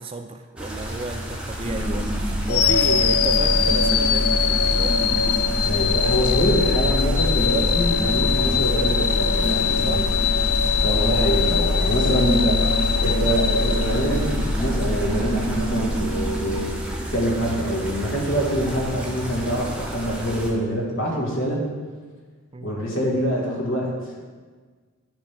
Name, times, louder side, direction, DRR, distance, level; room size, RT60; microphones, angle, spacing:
voice 1, 0.0-5.0 9.8-10.1 11.9-12.3 22.5-22.8, right 2 dB, 25° right, 6 dB, 0.4 m, -33 dB
sound 1, 0.6-20.5, right 1 dB, 5° right, 0.9 m, -33 dB
sound 2, 1.6-17.5, left 1 dB, 40° right, 0.9 m, -25 dB
sound 3, 2.5-14.6, left 7 dB, 85° left, 0.4 m, -23 dB
voice 2, 5.6-10.1 10.8-12.6 13.0-16.8 17.1-21.6 22.6-24.2, equal, 60° left, -2 dB, 1.7 m, -25 dB
10.0 x 3.5 x 5.8 m, 1.5 s
head